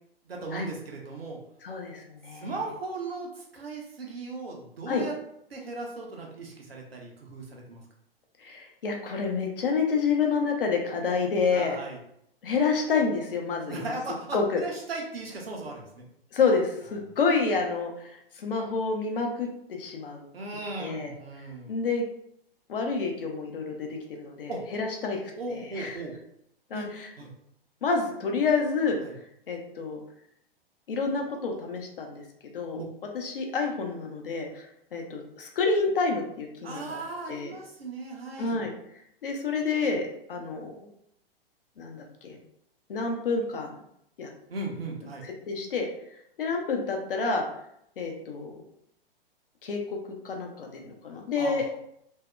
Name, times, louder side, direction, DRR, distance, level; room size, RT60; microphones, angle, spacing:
voice 1, 0.2-1.4 2.4-5.1 5.5-7.8 11.5-12.0 13.7-16.0 20.3-21.7 24.5-24.6 25.4-26.1 26.7-26.9 27.2-27.3 29.0-29.1 32.7-32.8 36.6-38.6 44.5-45.2 51.4-51.7, right 3 dB, 75° right, -1 dB, 0.8 m, -37 dB
voice 2, 1.6-2.5 4.9-5.0 8.4-11.8 12.4-14.0 14.3-14.6 16.3-20.3 20.8-21.1 21.7-22.1 22.7-25.9 26.7-27.1 27.8-29.0 29.5-30.0 30.9-32.2 32.5-32.8 33.1-37.0 37.3-37.5 38.4-38.7 39.2-40.7 41.8-42.4 42.9-43.7 44.2-44.3 45.5-45.9 46.4-47.5 48.0-48.6 49.6-50.0 50.2-51.6, left 4 dB, 65° left, 2 dB, 0.6 m, -28 dB
2.6 x 2.1 x 2.3 m, 0.73 s
figure-of-eight pair, 110°, 30 cm